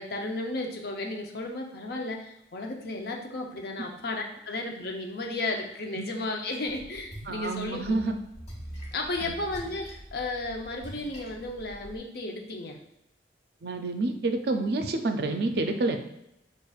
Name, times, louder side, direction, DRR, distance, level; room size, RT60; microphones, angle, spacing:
voice 1, 0.0-8.0 8.9-12.8, left 2 dB, 55° left, 2 dB, 0.6 m, -34 dB
Splash splatter, 6.7-12.0, equal, 35° left, 1.0 m, -44 dB
voice 2, 7.3-8.2 9.2-9.3 13.6-16.0, right 2 dB, 55° right, 6 dB, 0.4 m, -28 dB
6.4 x 2.5 x 2.4 m, 0.84 s
head